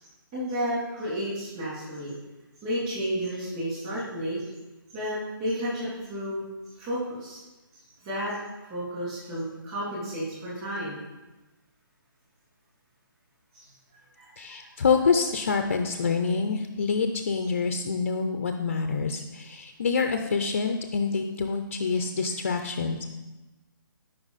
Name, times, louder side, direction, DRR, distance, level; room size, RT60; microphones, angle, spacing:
voice 1, 0.3-2.1 2.6-4.4 4.9-6.4 6.8-7.4 8.0-8.3 8.7-11.0 14.1-14.7, equal, 20° right, -8 dB, 3.1 m, -32 dB
voice 2, 14.4-23.0, left 5 dB, 35° left, 6 dB, 0.5 m, -26 dB
12.5 x 5.5 x 4.1 m, 1.1 s
hypercardioid pair, 175°, 12 cm